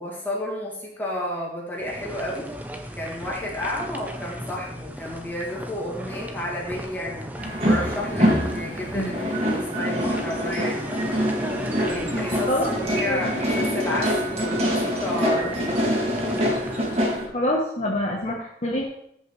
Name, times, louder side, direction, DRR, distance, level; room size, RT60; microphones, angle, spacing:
voice 1, 0.0-2.5 3.0-7.3 7.6-11.1 11.9-15.8, left 1 dB, 10° left, -4 dB, 2.4 m, -31 dB
sound 1, 1.8-17.0, equal, 10° right, 0.7 m, -36 dB
sound 2, 7.4-17.3, equal, 35° right, 2.0 m, -25 dB
voice 2, 17.3-18.9, left 1 dB, 40° left, -1 dB, 1.0 m, -25 dB
13.5 x 5.4 x 3.2 m, 0.72 s
head